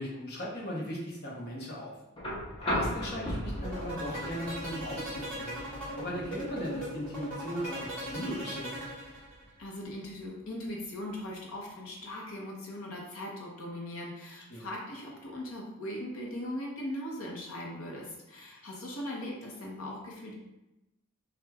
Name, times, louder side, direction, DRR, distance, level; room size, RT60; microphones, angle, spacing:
voice 1, 0.0-1.9 2.4-5.6 5.9-8.7 14.5-14.7, equal, 45° left, -3 dB, 1.0 m, -38 dB
sound 1, 2.2-10.2 11.6-11.7, equal, 25° left, 0.7 m, -38 dB
sound 2, 3.6-9.5, equal, 5° left, 1.4 m, -39 dB
voice 2, 9.6-20.3, left 1 dB, 70° left, -1 dB, 0.9 m, -39 dB
6.1 x 2.4 x 2.3 m, 0.95 s
head